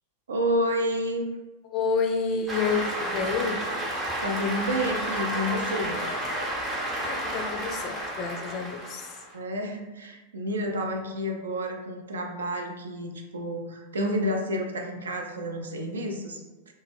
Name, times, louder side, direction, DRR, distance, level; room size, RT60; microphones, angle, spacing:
voice 1, 0.3-1.3 4.2-6.0 9.3-16.4, equal, 70° right, 2 dB, 0.4 m, -30 dB
voice 2, 1.6-3.6 7.0-9.2 10.5-10.7, left 5 dB, 35° left, 4 dB, 0.3 m, -29 dB
Cheering / Applause, 2.5-9.3, right 1 dB, 15° right, 0.7 m, -31 dB
2.1 x 2.0 x 3.3 m, 1.1 s
figure-of-eight pair, 90°, 0 cm